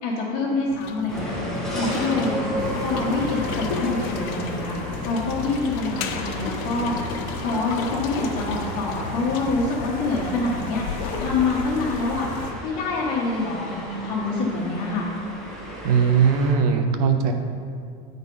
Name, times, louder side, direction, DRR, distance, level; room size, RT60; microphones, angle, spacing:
voice 1, 0.0-6.9 7.4-12.3 12.6-15.1, left 3 dB, 45° left, -8 dB, 1.3 m, -26 dB
sound 1, 0.7-9.9, left 5 dB, 65° left, 0.7 m, -37 dB
sound 2, 1.1-16.5, equal, ahead, 1.3 m, -33 dB
sound 3, 2.6-12.5, left 3 dB, 85° left, 1.5 m, -34 dB
voice 2, 15.8-17.3, right 6 dB, 70° right, 5 dB, 0.9 m, -19 dB
9.0 x 4.0 x 5.4 m, 2.2 s
supercardioid pair, 150°, 20 cm